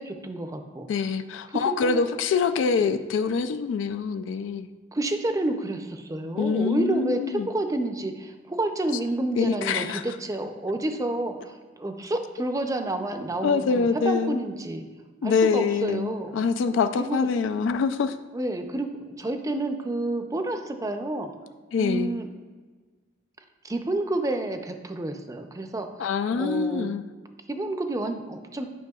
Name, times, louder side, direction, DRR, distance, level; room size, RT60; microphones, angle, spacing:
voice 1, 0.0-1.1 1.6-2.1 2.8-2.9 4.9-14.9 15.2-16.3 16.9-17.3 18.3-21.3 21.8-22.3 23.6-26.9 27.5-28.7, right 2 dB, 20° right, 6 dB, 0.5 m, -29 dB
voice 2, 0.9-4.7 6.4-7.5 9.4-10.0 13.4-14.4 15.2-18.2 21.7-22.1 26.0-27.0, left 5 dB, 85° left, 10 dB, 0.3 m, -25 dB
9.3 x 5.7 x 2.4 m, 1.4 s
head